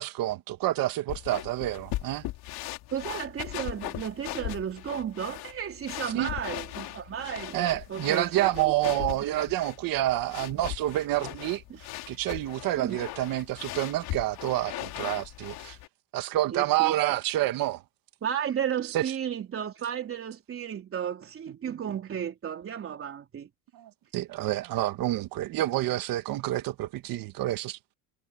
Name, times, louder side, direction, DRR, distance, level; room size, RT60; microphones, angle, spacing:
voice 1, 0.0-2.2 6.1-6.3 7.5-15.8 16.1-17.8 18.9-19.1 23.7-27.8, right 15 dB, 55° right, 1.8 m, -28 dB
sound 1, 1.1-15.9, left 17 dB, 60° left, 3.0 m, -39 dB
voice 2, 2.9-8.7 9.2-9.3 12.8-13.0 16.5-17.0 18.2-23.5, right 9 dB, 30° right, 3.5 m, -34 dB
cardioid pair, 140°, 41 cm